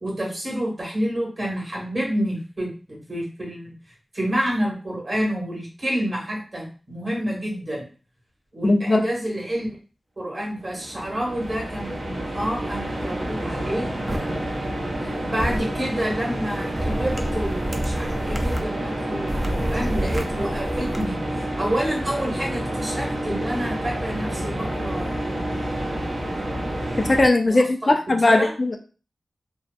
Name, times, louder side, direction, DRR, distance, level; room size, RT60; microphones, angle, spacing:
voice 1, 0.0-3.7 4.1-7.9 8.5-9.7 10.2-14.5 15.0-21.2 21.6-25.4 27.4-27.9 28.2-28.5, equal, 50° right, -2 dB, 1.3 m, -29 dB
voice 2, 8.6-9.0 27.1-28.8, left 2 dB, 50° left, 5 dB, 0.3 m, -18 dB
sound 1, 10.6-27.3, right 1 dB, 65° right, 0.7 m, -29 dB
sound 2, 14.1-14.2 15.4-15.6 16.8-18.6 19.3-21.0, right 1 dB, 25° right, 0.4 m, -27 dB
2.6 x 2.0 x 2.3 m, 0.37 s
cardioid pair, 50°, 0 cm